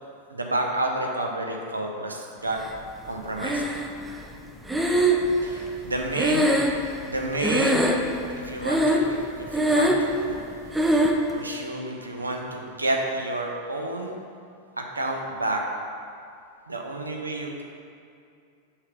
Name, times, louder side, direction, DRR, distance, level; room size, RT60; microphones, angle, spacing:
voice 1, 0.3-2.6 3.0-3.6 5.4-8.0 8.3-10.5 11.0-14.2 14.8-15.6 16.7-17.6, right 2 dB, 80° right, 1 dB, 0.6 m, -30 dB
Breathing, 3.4-4.1 4.7-7.2 7.4-8.2 8.6-9.2 9.5-10.1 10.7-11.2, right 1 dB, 5° right, 0.5 m, -22 dB
5.5 x 3.3 x 5.1 m, 2.4 s
figure-of-eight pair, 90°, 0 cm